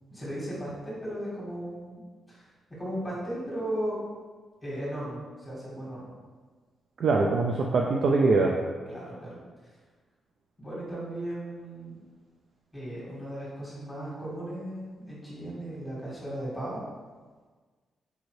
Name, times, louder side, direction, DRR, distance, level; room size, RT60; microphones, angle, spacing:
voice 1, 0.1-2.0 2.3-2.5 2.8-4.0 4.6-6.1 8.9-9.4 9.6-9.7 10.6-11.9 12.7-16.8, right 1 dB, 10° left, -8 dB, 1.4 m, -36 dB
voice 2, 7.0-8.5, right 3 dB, 65° right, 0 dB, 0.3 m, -23 dB
4.7 x 2.6 x 3.1 m, 1.4 s
cardioid pair, 105°, 0 cm